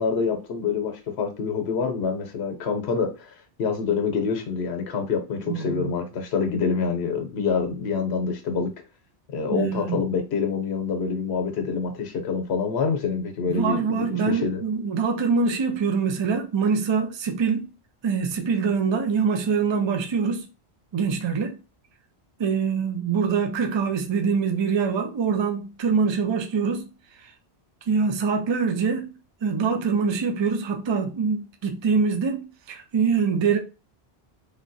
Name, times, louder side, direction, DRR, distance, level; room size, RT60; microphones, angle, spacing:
voice 1, 0.0-3.3 3.6-8.7 9.3-14.6, left 5 dB, 85° left, 1.0 m, -26 dB
voice 2, 5.5-5.9 9.5-10.0 13.5-17.7 18.0-20.5 20.9-21.6 22.4-26.9 27.9-29.1 29.4-33.6, right 5 dB, 45° right, 0.4 m, -24 dB
3.6 x 2.2 x 2.5 m
omnidirectional pair, 1.1 m